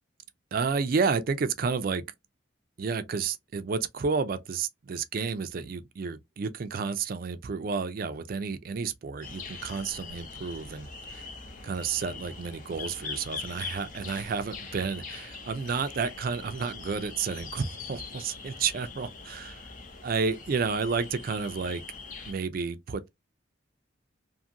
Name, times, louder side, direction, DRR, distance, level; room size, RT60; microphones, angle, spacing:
voice 1, 0.5-2.0 2.8-11.3 11.6-19.6 20.0-21.8 22.3-23.1, right 5 dB, 50° right, 0.4 m, -31 dB
sound 1, 9.2-22.3, left 4 dB, 40° left, 0.6 m, -42 dB
2.6 x 2.5 x 2.7 m
head